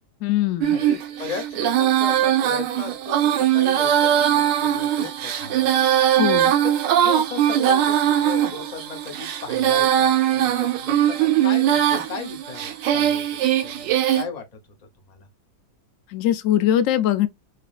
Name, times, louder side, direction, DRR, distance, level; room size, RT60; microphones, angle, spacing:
voice 1, 0.2-0.8 6.2-6.5 16.1-17.3, left 11 dB, 70° left, 0.8 m, -21 dB
Female singing, 0.6-14.2, right 11 dB, 85° right, 1.4 m, -20 dB
voice 2, 0.7-5.7 6.6-14.4 15.0-15.3, left 5 dB, 35° left, 0.7 m, -36 dB
4.8 x 2.9 x 2.4 m
omnidirectional pair, 1.9 m